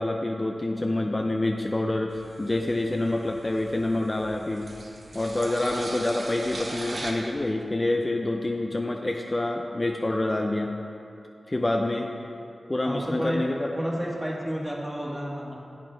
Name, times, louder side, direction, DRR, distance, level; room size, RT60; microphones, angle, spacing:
voice 1, 0.0-4.7 5.1-10.7 11.5-12.1 12.7-13.7, left 2 dB, 35° left, 2 dB, 0.5 m, -27 dB
sound 1, 2.1-7.1, right 2 dB, 60° right, 1.0 m, -40 dB
voice 2, 12.8-13.4 13.7-15.6, equal, 10° right, -3 dB, 1.6 m, -31 dB
8.7 x 8.2 x 3.3 m, 2.7 s
cardioid pair, 50°, 0 cm